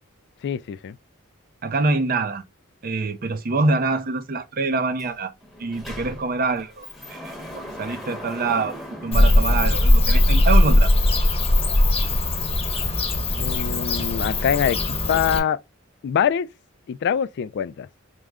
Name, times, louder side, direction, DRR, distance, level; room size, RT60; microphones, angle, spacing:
voice 1, 0.4-1.0 13.4-14.8 15.1-15.6 16.0-16.5 16.9-17.9, left 8 dB, 55° left, 0.3 m, -24 dB
voice 2, 1.6-2.4 2.8-5.3 5.6-8.7 9.0-10.9, right 3 dB, 45° right, 0.5 m, -25 dB
Sliding door, 5.0-5.1 5.4-10.4, equal, ahead, 1.0 m, -38 dB
Bird / Cricket, 9.1-15.4, left 1 dB, 30° left, 1.2 m, -19 dB
4.6 x 2.1 x 3.5 m
head